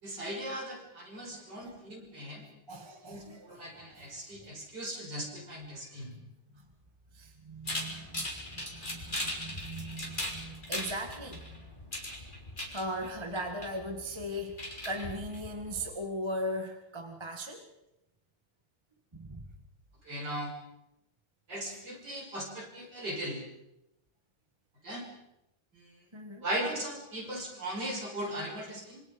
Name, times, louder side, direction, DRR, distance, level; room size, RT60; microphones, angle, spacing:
voice 1, 0.0-2.5 3.1-6.1 20.0-20.5 21.5-23.4 24.8-25.1 25.7-26.0 26.4-29.0, right 1 dB, 50° right, 0 dB, 6.7 m, -38 dB
voice 2, 1.3-1.7 2.7-3.6 4.0-4.1 5.0-5.1 6.5-6.7 7.1-11.7 12.7-17.7 19.1-19.5 26.1-26.5, equal, 15° right, 4 dB, 1.9 m, -39 dB
sound 1, 7.7-15.9, left 1 dB, 20° left, 3.8 m, -39 dB
26.5 x 25.0 x 5.4 m, 0.89 s
omnidirectional pair, 2.3 m